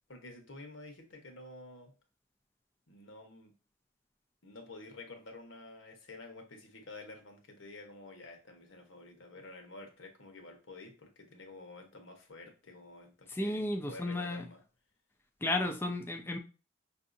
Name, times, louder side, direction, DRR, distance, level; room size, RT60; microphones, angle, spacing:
voice 1, 0.1-1.9 2.9-3.5 4.4-14.6, left 2 dB, 85° left, 4 dB, 1.0 m, -50 dB
voice 2, 13.4-14.4 15.4-16.4, left 2 dB, 10° left, 4 dB, 0.4 m, -33 dB
5.4 x 2.7 x 2.5 m, 0.33 s
head